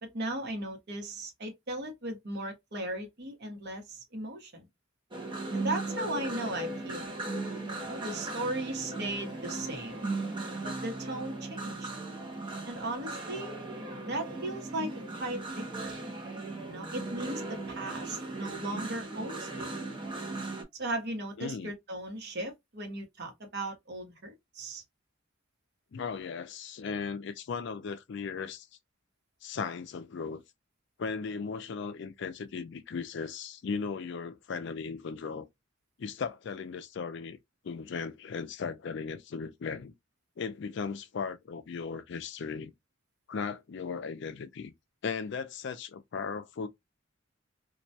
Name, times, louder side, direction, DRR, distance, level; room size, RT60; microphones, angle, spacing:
voice 1, 0.0-4.7 5.5-7.1 7.8-10.1 10.6-11.9 12.7-13.5 14.0-14.9 15.2-16.0 16.7-19.7 20.8-24.8, right 1 dB, 55° right, 0.9 m, -37 dB
sound 1, 5.1-20.6, right 2 dB, 25° right, 0.7 m, -37 dB
voice 2, 21.4-21.7 25.9-28.7 29.4-30.4 31.0-35.5 36.0-37.4 37.6-39.9 40.4-42.7 43.3-44.7 45.0-46.7, left 5 dB, 65° left, 0.4 m, -37 dB
2.3 x 2.1 x 2.6 m
head